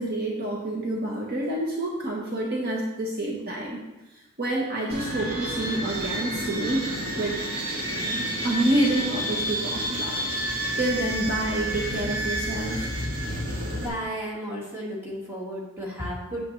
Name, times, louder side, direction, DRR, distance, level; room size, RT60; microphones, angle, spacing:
voice 1, 0.0-3.8 4.4-7.4 8.0-10.2 10.8-12.9, right 1 dB, 45° right, -2 dB, 1.0 m, -28 dB
sound 1, 4.9-13.9, equal, 85° right, 2.1 m, -30 dB
voice 2, 13.7-16.5, equal, 10° right, -5 dB, 1.7 m, -33 dB
8.2 x 7.5 x 3.2 m, 1.1 s
head